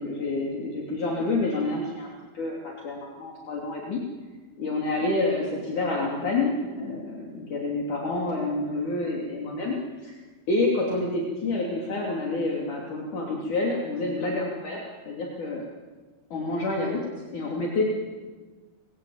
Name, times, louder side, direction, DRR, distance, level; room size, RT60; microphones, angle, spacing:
voice 1, 0.0-2.1 2.3-4.0 4.6-10.1 10.5-15.6 16.3-17.0 17.3-17.9, left 2 dB, 50° left, -2 dB, 4.4 m, -28 dB
27.0 x 22.0 x 8.9 m, 1.4 s
omnidirectional pair, 4.6 m